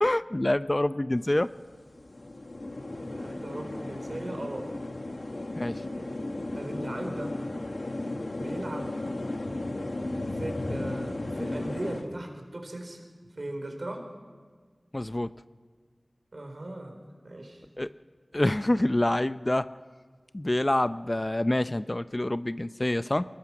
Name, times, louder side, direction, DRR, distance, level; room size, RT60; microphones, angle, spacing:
voice 1, 0.0-1.5 5.6-5.8 14.9-15.3 17.8-17.9 18.3-19.7 20.3-23.3, left 1 dB, 35° left, 13 dB, 0.5 m, -26 dB
sound 1, 1.2-1.3 1.5-12.0, left 2 dB, 70° left, 1.6 m, -35 dB
voice 2, 3.0-4.7 6.5-7.4 8.4-9.0 10.3-13.0 13.4-14.1 16.3-17.0 17.2-17.6, right 1 dB, 65° right, 4 dB, 4.1 m, -38 dB
24.0 x 21.0 x 6.1 m, 1.5 s
wide cardioid pair, 45°, 0 cm